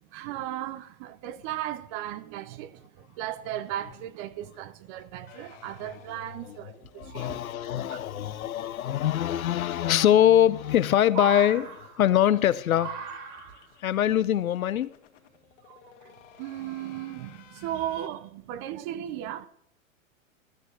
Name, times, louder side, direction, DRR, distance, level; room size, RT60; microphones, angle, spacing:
voice 1, 0.0-7.3 7.9-8.0 15.6-19.5, right 12 dB, 25° right, 0.4 m, -36 dB
sound 1, 5.3-10.4 10.6-10.7 11.0-11.1 11.4-18.1, left 8 dB, 60° left, 1.7 m, -56 dB
sound 2, 5.8-5.9 6.1-6.2 6.8-7.4 8.9-9.0 10.3-10.8 11.0-12.3 12.7-13.8 14.7-14.8, right 5 dB, 45° right, 2.5 m, -38 dB
voice 2, 7.0-13.0 13.8-14.9, left 11 dB, 90° left, 0.7 m, -23 dB
13.5 x 6.2 x 7.8 m
hypercardioid pair, 130°, 41 cm